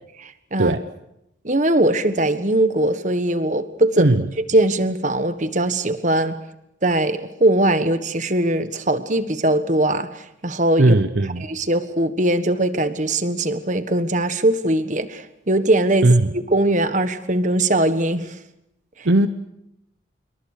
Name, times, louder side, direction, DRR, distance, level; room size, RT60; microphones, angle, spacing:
voice 1, 0.2-0.8 1.4-4.1 4.5-6.4 6.8-10.9 11.4-18.3 19.0-19.1, right 1 dB, 40° right, 11 dB, 1.4 m, -21 dB
voice 2, 10.8-11.5 16.0-16.3 19.0-19.3, right 2 dB, 65° right, 11 dB, 0.9 m, -17 dB
27.0 x 23.5 x 6.7 m, 0.82 s
head